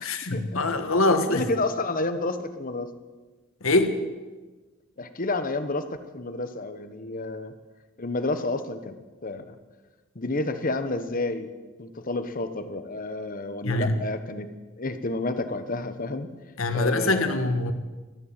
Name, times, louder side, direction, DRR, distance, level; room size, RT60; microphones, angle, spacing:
voice 1, 0.0-1.5 3.6-4.0 13.6-14.0 16.6-17.7, left 2 dB, 85° left, 8 dB, 1.6 m, -24 dB
voice 2, 0.7-2.9 5.0-5.9 6.1-7.5 8.0-8.9 9.2-9.5 10.1-11.5 11.8-14.5 14.8-16.3 16.7-17.5, left 2 dB, 45° left, 10 dB, 1.1 m, -30 dB
13.5 x 11.5 x 8.8 m, 1.3 s
head